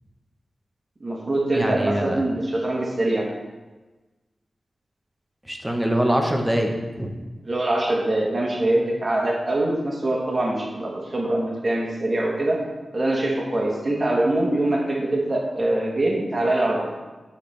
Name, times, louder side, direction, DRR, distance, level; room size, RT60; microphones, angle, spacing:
voice 1, 1.0-3.3 7.4-12.6 12.9-16.9, right 1 dB, 35° right, -2 dB, 1.3 m, -23 dB
voice 2, 1.5-2.2 5.4-7.1, equal, 10° right, 2 dB, 0.9 m, -24 dB
11.5 x 4.3 x 3.3 m, 1.2 s
wide cardioid pair, 105°, 0 cm